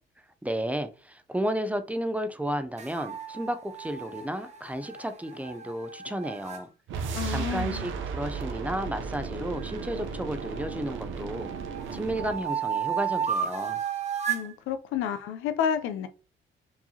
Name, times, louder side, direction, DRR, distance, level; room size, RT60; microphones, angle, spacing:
voice 1, 0.4-6.7 7.3-11.5 11.9-13.8, right 1 dB, 5° right, 0.5 m, -32 dB
sound 1, 2.8-6.6 9.6-10.8 11.3-14.5, right 8 dB, 35° right, 1.0 m, -34 dB
sound 2, 6.9-12.5, right 5 dB, 75° right, 0.7 m, -35 dB
voice 2, 7.1-7.8 14.3-16.1, left 8 dB, 90° left, 0.5 m, -30 dB
4.6 x 2.7 x 2.8 m
cardioid pair, 90°, 20 cm